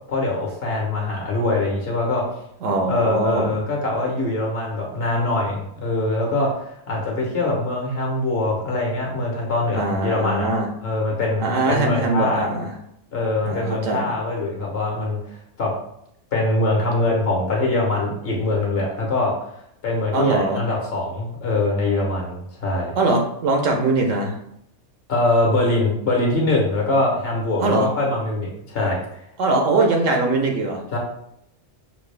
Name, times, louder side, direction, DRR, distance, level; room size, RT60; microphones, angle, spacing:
voice 1, 0.1-2.2 2.9-10.5 10.8-12.5 13.1-15.2 15.6-15.7 16.3-19.3 19.8-22.9 25.1-29.0 30.9-31.0, left 2 dB, 50° left, -1 dB, 1.4 m, -23 dB
voice 2, 2.6-3.6 9.7-10.7 11.4-12.7 13.4-14.1 20.1-20.6 23.0-24.4 27.6-27.9 29.4-30.8, right 2 dB, 80° right, 2 dB, 1.2 m, -21 dB
5.8 x 2.4 x 3.3 m, 0.75 s
omnidirectional pair, 1.3 m